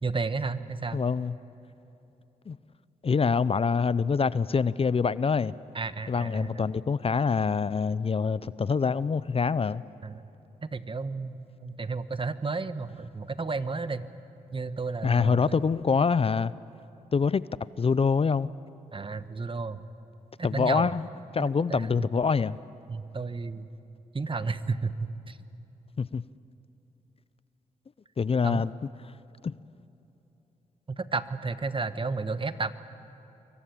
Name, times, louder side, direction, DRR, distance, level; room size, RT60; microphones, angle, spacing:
voice 1, 0.0-1.0 5.7-6.7 10.0-10.3 10.6-14.1 14.5-15.6 18.9-19.8 20.4-20.9 21.4-21.9 22.9-23.7 24.1-25.4 28.4-28.7 30.9-32.7, right 4 dB, 35° right, 12 dB, 1.3 m, -32 dB
voice 2, 0.9-1.3 2.5-2.6 3.0-5.5 6.1-9.8 15.0-16.5 17.1-17.4 17.8-18.5 20.4-21.1 21.3-22.6 26.0-26.2 28.2-28.7 29.4-29.5, left 5 dB, 40° left, 18 dB, 0.6 m, -25 dB
27.0 x 23.5 x 8.6 m, 3.0 s
supercardioid pair, 50°, 15 cm